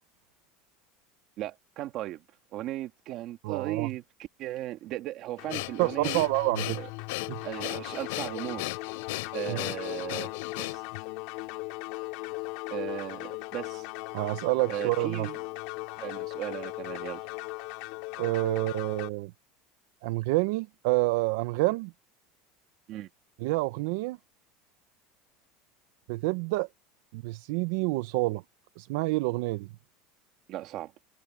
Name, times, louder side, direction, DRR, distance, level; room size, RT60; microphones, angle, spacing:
voice 1, 1.4-2.2 2.5-4.0 4.4-6.3 6.7-6.9 7.4-8.6 9.3-10.8 12.7-13.9 14.7-15.4 16.0-17.3 22.9-23.1 30.5-30.9, right 14 dB, 40° right, 2.0 m, -36 dB
voice 2, 3.4-3.9 5.8-6.8 7.3-7.4 9.5-9.6 14.1-15.3 18.2-19.3 20.0-21.9 23.4-24.2 26.1-26.7 27.1-28.4 28.8-29.7, right 22 dB, 65° right, 0.5 m, -28 dB
sound 1, 5.4-19.1, left 23 dB, 60° left, 2.3 m, -38 dB
Breathing, 5.5-11.0, left 21 dB, 80° left, 2.8 m, -36 dB
supercardioid pair, 165°, 0 cm